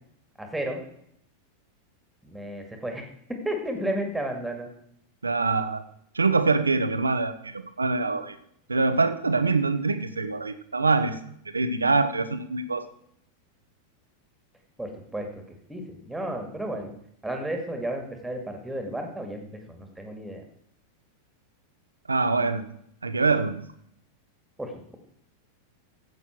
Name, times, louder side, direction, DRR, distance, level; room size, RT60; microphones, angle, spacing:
voice 1, 0.4-0.8 2.2-3.1 3.4-4.7 14.8-15.4 15.7-16.9 17.2-20.4 24.6-25.0, right 1 dB, 5° right, 4 dB, 2.1 m, -33 dB
voice 2, 5.2-5.8 6.1-8.4 8.7-11.2 11.5-12.9 22.1-22.6 23.0-23.6, right 3 dB, 80° right, 11 dB, 1.0 m, -24 dB
14.5 x 8.5 x 4.5 m, 0.70 s
figure-of-eight pair, 90°, 0 cm